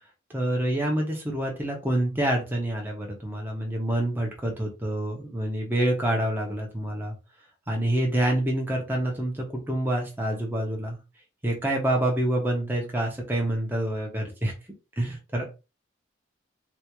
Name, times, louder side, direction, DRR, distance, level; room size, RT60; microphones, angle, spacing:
voice 1, 0.3-7.1 7.7-11.0 11.4-14.5 15.0-15.4, right 1 dB, 10° right, 0 dB, 0.7 m, -27 dB
3.4 x 2.4 x 3.0 m, 0.29 s
head